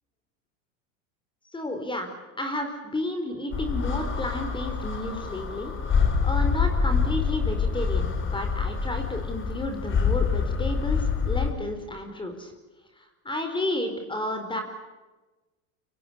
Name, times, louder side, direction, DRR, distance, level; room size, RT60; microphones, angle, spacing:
voice 1, 1.5-2.1 2.4-12.5 13.0-14.6, left 1 dB, 10° left, 5 dB, 4.4 m, -32 dB
sound 1, 3.5-11.5, left 5 dB, 30° left, 4.1 m, -26 dB
28.5 x 25.5 x 7.0 m, 1.2 s
supercardioid pair, 115°, 40 cm